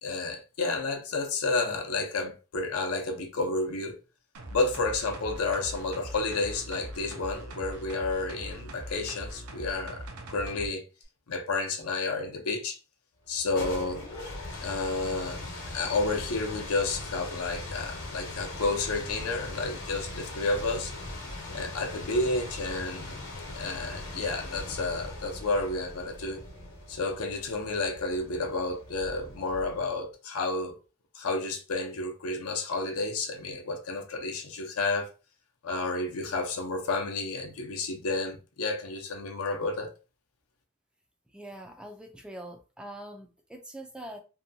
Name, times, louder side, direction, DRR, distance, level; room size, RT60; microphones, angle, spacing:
voice 1, 0.0-3.9 4.5-10.8 11.3-12.8 13.3-14.0 14.6-15.4 15.7-20.9 21.5-23.1 23.6-26.4 26.9-30.8 31.1-35.1 35.6-39.9, left 3 dB, 80° left, 0.6 m, -31 dB
sound 1, 4.3-10.7 11.0-11.1, right 1 dB, 80° right, 0.6 m, -42 dB
sound 2, 13.3-30.0, left 2 dB, 65° left, 1.0 m, -40 dB
voice 2, 41.3-44.2, right 1 dB, 5° right, 0.3 m, -43 dB
2.7 x 2.2 x 2.6 m
head